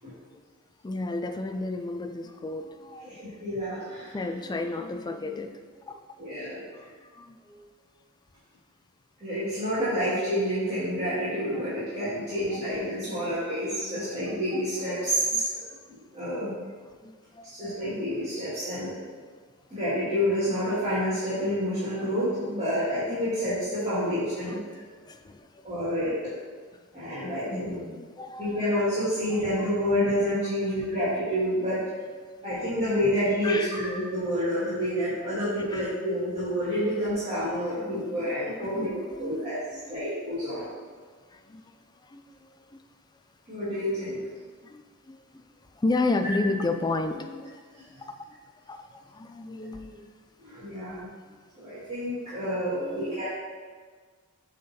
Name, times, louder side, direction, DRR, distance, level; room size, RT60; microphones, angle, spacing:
voice 1, 0.8-3.2 4.1-6.0 6.7-7.7 12.5-12.6 13.0-13.3 13.9-14.1 14.5-14.6 15.3-15.5 17.0-17.7 23.8-24.0 24.5-24.6 25.1-25.7 27.2-28.6 29.3-29.4 30.6-30.7 32.4-32.6 33.4-33.7 35.7-35.9 37.9-40.0 41.3-41.6 42.0-42.8 44.4-45.4 45.7-48.4 48.7-50.1 51.3-51.4 52.8-53.1, left 2 dB, 20° left, 7 dB, 0.4 m, -34 dB
voice 2, 3.0-4.2 6.2-6.7 9.2-16.5 17.4-19.0 19.7-24.7 25.6-26.1 26.9-27.8 28.4-31.8 32.4-39.6 39.9-40.7 43.5-44.2 50.4-51.1 51.6-53.4, equal, 30° right, -13 dB, 2.1 m, -28 dB
8.3 x 4.0 x 4.2 m, 1.5 s
head